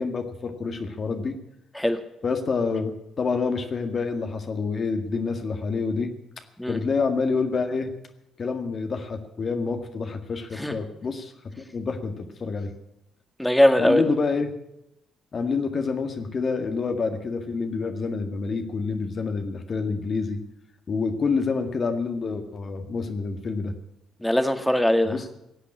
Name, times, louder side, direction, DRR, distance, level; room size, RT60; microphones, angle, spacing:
voice 1, 0.0-1.4 2.2-6.1 6.7-7.9 8.4-12.7 13.8-14.5 15.3-20.4 20.9-23.7 25.1-25.3, left 4 dB, 45° left, 5 dB, 1.9 m, -27 dB
voice 2, 13.4-14.0 24.2-25.2, left 1 dB, 5° left, 7 dB, 2.1 m, -20 dB
17.0 x 8.3 x 9.7 m, 0.84 s
hypercardioid pair, 50°, 0 cm